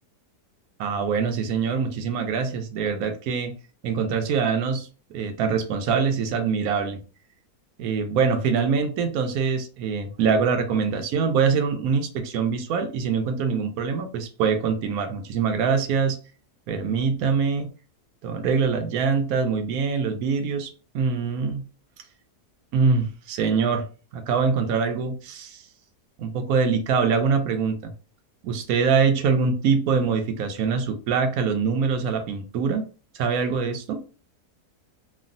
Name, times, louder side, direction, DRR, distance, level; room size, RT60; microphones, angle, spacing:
voice 1, 0.8-3.5 3.8-7.0 7.8-16.2 16.7-17.7 18.2-21.6 22.7-23.9 24.1-25.6 26.2-27.9 28.4-32.8 33.1-34.0, right 5 dB, 70° right, 6 dB, 1.0 m, -24 dB
3.2 x 2.3 x 2.5 m, 0.35 s
omnidirectional pair, 1.7 m